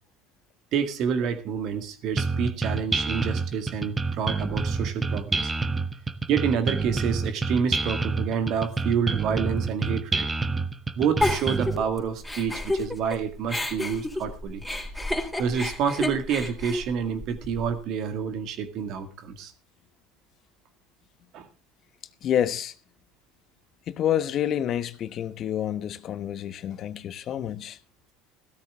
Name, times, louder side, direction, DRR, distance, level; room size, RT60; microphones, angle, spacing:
voice 1, 0.7-5.5 6.3-10.3 11.0-14.6 15.4-19.5 21.3-21.5, right 7 dB, 55° right, 2.0 m, -28 dB
sound 1, 2.2-11.8, right 3 dB, 20° right, 1.1 m, -28 dB
Giggle, 11.2-13.2 13.5-17.7, left 2 dB, ahead, 4.1 m, -30 dB
voice 2, 22.2-22.7 23.9-27.8, left 10 dB, 45° left, 1.1 m, -28 dB
15.5 x 13.5 x 3.6 m
hypercardioid pair, 80°, 0 cm